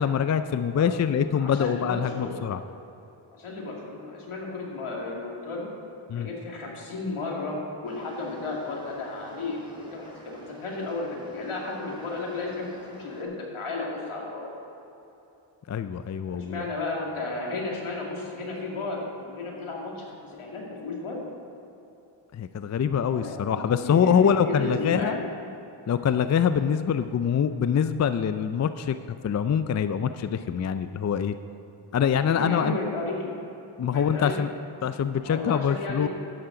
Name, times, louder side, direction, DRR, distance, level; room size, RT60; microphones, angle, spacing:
voice 1, 0.0-2.6 6.1-6.3 15.7-16.7 22.3-25.2 25.9-31.3 31.9-32.7 33.8-34.5 34.8-36.1, left 7 dB, 35° left, 11 dB, 0.4 m, -24 dB
voice 2, 1.3-2.4 3.4-5.7 6.1-12.7 13.0-14.5 16.3-21.2 23.1-25.3 32.2-33.3 33.9-34.4 35.1-36.1, left 3 dB, 75° left, -2 dB, 2.3 m, -33 dB
sound 1, 7.8-13.2, equal, 10° right, 2.7 m, -49 dB
11.5 x 10.5 x 3.9 m, 2.9 s
cardioid pair, 60°, 50 cm